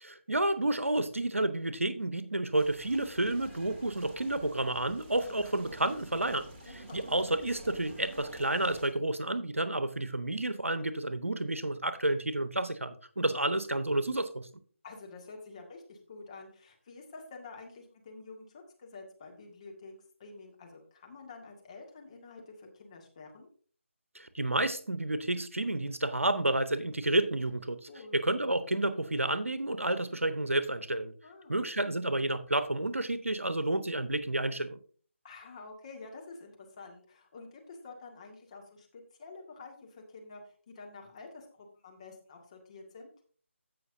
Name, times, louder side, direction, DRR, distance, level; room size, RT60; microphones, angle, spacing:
voice 1, 0.0-14.5 24.1-27.8 28.1-31.1 31.5-34.8, right 1 dB, 80° right, 1.0 m, -30 dB
sound 1, 2.5-8.9, right 1 dB, 20° right, 1.5 m, -50 dB
voice 2, 6.7-7.1 14.8-19.9 20.2-23.5 27.9-28.2 31.2-31.6 35.2-43.1, left 3 dB, 30° left, 1.9 m, -49 dB
16.0 x 6.0 x 2.7 m
figure-of-eight pair, 155°, 7 cm